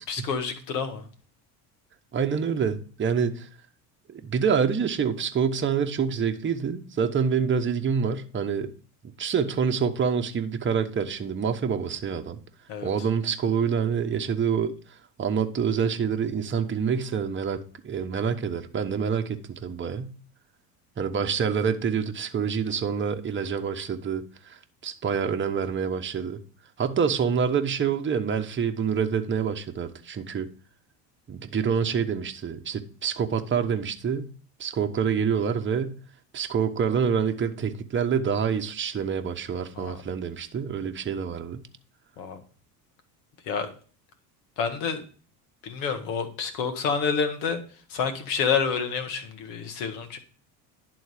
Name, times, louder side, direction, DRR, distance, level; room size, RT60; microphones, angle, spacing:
voice 1, 0.1-1.1 12.7-13.1 39.8-40.0 42.2-42.4 43.4-43.7 44.6-45.0 45.6-47.6 47.9-50.2, left 6 dB, 75° left, 1.8 m, -28 dB
voice 2, 2.1-3.5 4.1-8.7 9.2-12.4 12.8-14.8 15.2-20.1 21.0-26.4 26.8-30.5 31.3-34.3 34.6-36.0 36.3-41.6, right 6 dB, 25° right, 1.0 m, -27 dB
11.0 x 3.9 x 4.9 m
hypercardioid pair, 80°, 49 cm